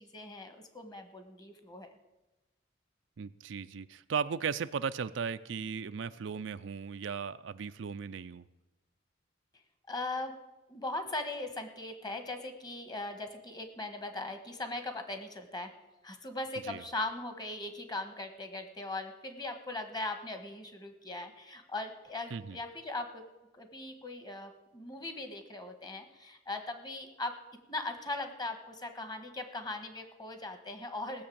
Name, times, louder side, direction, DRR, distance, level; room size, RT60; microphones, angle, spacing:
voice 1, 0.0-1.9 9.9-10.3 10.7-15.7 16.0-23.3 23.5-27.4 27.7-31.2, left 2 dB, 20° left, 7 dB, 1.4 m, -39 dB
voice 2, 3.2-8.5 16.6-16.8 22.3-22.6, right 6 dB, 70° right, 12 dB, 0.4 m, -36 dB
17.0 x 6.8 x 8.6 m, 1.1 s
head